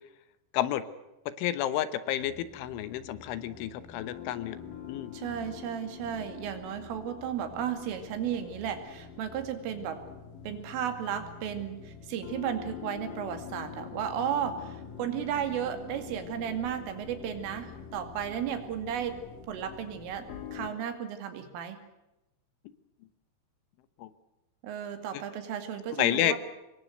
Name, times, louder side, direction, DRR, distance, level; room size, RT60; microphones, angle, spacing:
voice 1, 1.4-4.6 4.9-5.1 24.0-24.1 26.0-26.4, left 12 dB, 80° left, 14 dB, 3.6 m, -30 dB
sound 1, 2.2-20.7, left 7 dB, 50° left, 3.4 m, -45 dB
voice 2, 5.1-10.0 10.4-19.2 19.5-21.8 24.6-26.4, right 9 dB, 85° right, 8 dB, 5.0 m, -34 dB
26.0 x 21.5 x 8.0 m, 0.96 s
omnidirectional pair, 5.6 m